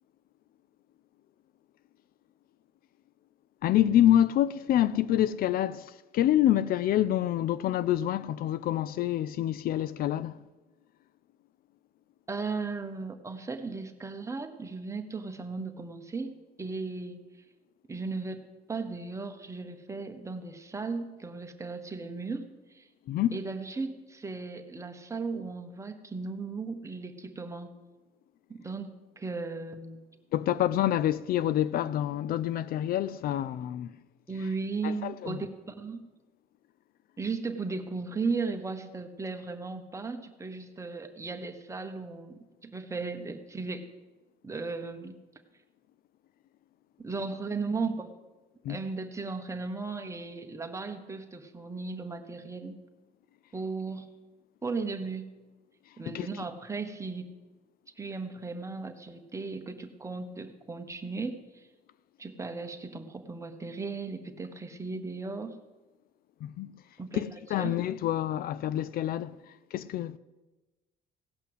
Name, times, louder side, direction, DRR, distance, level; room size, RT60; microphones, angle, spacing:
voice 1, 3.6-10.4 23.1-23.4 30.3-34.0 34.8-35.4 48.6-48.8 56.1-56.3 66.4-66.7 67.1-70.2, left 12 dB, 60° left, 0.4 m, -27 dB
voice 2, 12.3-17.2 17.9-22.5 22.7-22.9 23.3-27.7 28.6-30.0 34.3-36.0 37.2-43.9 44.4-45.2 47.0-48.1 48.7-52.8 53.5-54.1 54.6-55.3 56.0-57.3 58.0-61.7 62.2-65.5 67.0-67.2 67.6-67.7, right 4 dB, 15° right, 1.2 m, -36 dB
17.0 x 5.7 x 7.9 m
cardioid pair, 110°, 17 cm